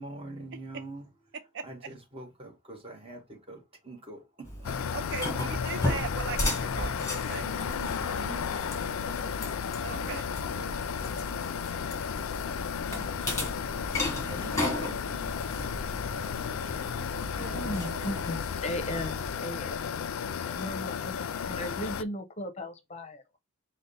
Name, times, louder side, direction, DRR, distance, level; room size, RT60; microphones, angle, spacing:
voice 1, 0.0-1.4 1.6-5.0 5.7-5.8 7.3-11.6 12.4-16.7 19.4-19.5, right 2 dB, 30° right, 1.1 m, -47 dB
sound 1, 4.4-19.3, left 1 dB, 15° left, 1.4 m, -36 dB
sound 2, 4.6-22.0, left 7 dB, 85° left, 0.3 m, -34 dB
voice 2, 4.9-7.4 9.8-10.2 17.3-18.2, right 5 dB, 60° right, 0.4 m, -39 dB
voice 3, 17.3-20.1 20.4-23.4, left 1 dB, 35° left, 0.6 m, -37 dB
5.0 x 2.1 x 3.9 m
head